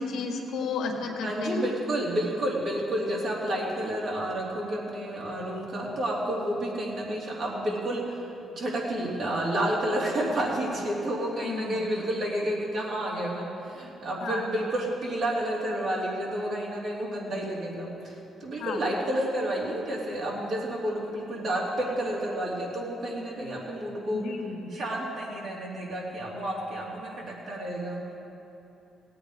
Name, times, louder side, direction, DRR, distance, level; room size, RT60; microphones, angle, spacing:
voice 1, 0.0-1.7 11.4-11.9 14.2-14.5 18.6-18.8 24.1-24.6, left 4 dB, 80° left, 2 dB, 1.5 m, -32 dB
voice 2, 1.2-24.2 24.7-28.1, right 1 dB, 65° right, -4 dB, 3.1 m, -30 dB
17.5 x 8.6 x 5.1 m, 2.8 s
cardioid pair, 90°, 0 cm